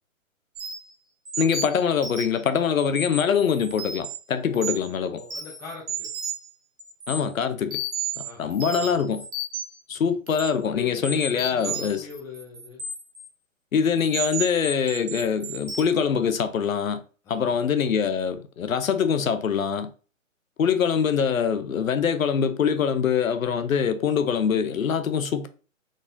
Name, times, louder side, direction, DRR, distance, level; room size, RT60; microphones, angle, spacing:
sound 1, 0.6-0.9 1.3-2.4 2.8-4.2 4.5-4.9 5.2-6.5 6.8-7.2 7.7-9.8 10.3-10.5 11.0-13.3 14.0-15.8, right 3 dB, 55° right, 1.5 m, -33 dB
voice 1, 1.4-5.2 7.1-7.8 8.4-9.3 9.9-12.0 13.7-17.0 17.3-19.9 20.6-25.5, left 7 dB, 80° left, 0.7 m, -24 dB
voice 2, 4.5-6.1 8.2-9.0 10.6-12.8 17.2-17.6, left 7 dB, 10° left, 0.6 m, -40 dB
4.0 x 3.7 x 2.5 m
hypercardioid pair, 140°, 40 cm